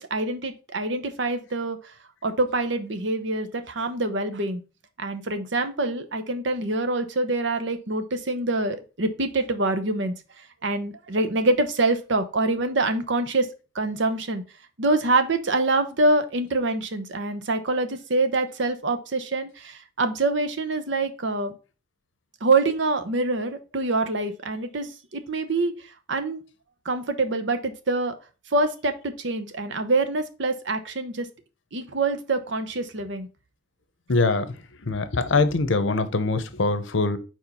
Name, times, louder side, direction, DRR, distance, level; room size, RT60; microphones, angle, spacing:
voice 1, 0.0-1.9 2.2-4.6 5.0-13.5 13.7-14.4 14.8-21.5 22.4-25.8 26.1-26.4 26.8-28.2 28.5-31.3 31.7-33.3, right 2 dB, 70° right, 0.9 m, -25 dB
voice 2, 34.1-34.5 34.8-37.2, left 3 dB, 75° left, 0.8 m, -23 dB
4.7 x 4.6 x 5.4 m
head